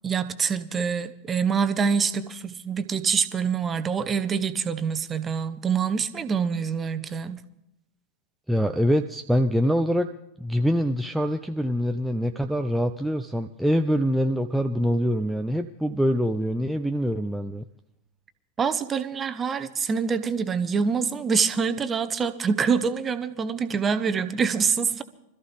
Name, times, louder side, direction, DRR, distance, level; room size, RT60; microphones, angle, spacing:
voice 1, 0.0-7.4 18.6-25.0, right 6 dB, 20° right, 12 dB, 1.0 m, -25 dB
voice 2, 8.5-10.1 10.4-17.6, equal, ahead, 5 dB, 0.6 m, -24 dB
25.0 x 14.0 x 3.4 m, 0.83 s
figure-of-eight pair, 90°, 0 cm